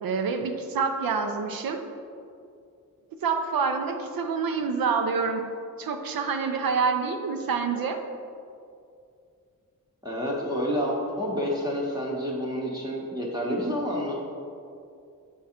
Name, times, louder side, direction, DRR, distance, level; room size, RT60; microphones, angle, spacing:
voice 1, 0.0-1.8 3.2-5.4 5.8-8.0, right 5 dB, 90° right, 5 dB, 0.6 m, -27 dB
voice 2, 10.0-14.2, equal, 10° right, -4 dB, 0.8 m, -29 dB
8.3 x 3.6 x 4.3 m, 2.4 s
wide cardioid pair, 140°, 34 cm